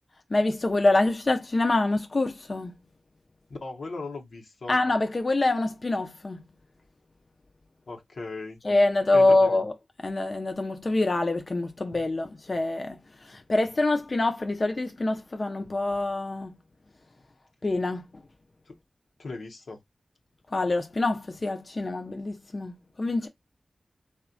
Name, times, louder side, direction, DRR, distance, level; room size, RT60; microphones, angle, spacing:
voice 1, 0.3-2.8 4.7-6.4 8.6-9.7 10.0-16.6 17.6-18.2 20.5-23.3, left 2 dB, 45° left, 0.4 m, -25 dB
voice 2, 3.5-4.8 7.9-8.6 9.1-9.6 18.7-18.8 19.2-19.8, left 3 dB, 85° left, 0.7 m, -38 dB
3.4 x 2.1 x 2.5 m
wide cardioid pair, 90°, 0 cm